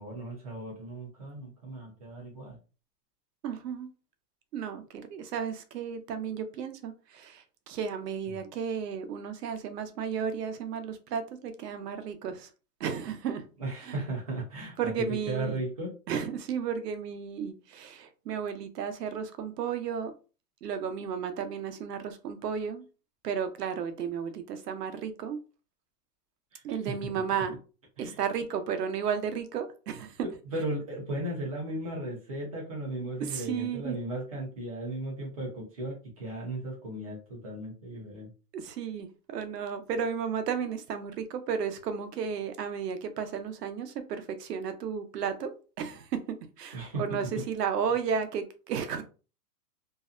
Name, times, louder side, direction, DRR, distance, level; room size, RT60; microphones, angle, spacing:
voice 1, 0.0-2.6 13.6-14.9 15.3-15.9 26.5-26.9 28.0-28.2 30.2-38.3 46.7-47.4, right 1 dB, 25° right, 0.5 m, -36 dB
voice 2, 3.4-3.9 4.5-12.5 12.8-13.4 13.8-14.0 14.8-15.6 16.1-20.1 20.6-22.8 23.2-25.4 26.6-27.5 28.0-30.3 33.2-34.0 38.5-45.5 45.8-46.2 46.6-49.0, right 7 dB, 75° right, 0.7 m, -33 dB
2.6 x 2.1 x 2.4 m
hypercardioid pair, 170°, 48 cm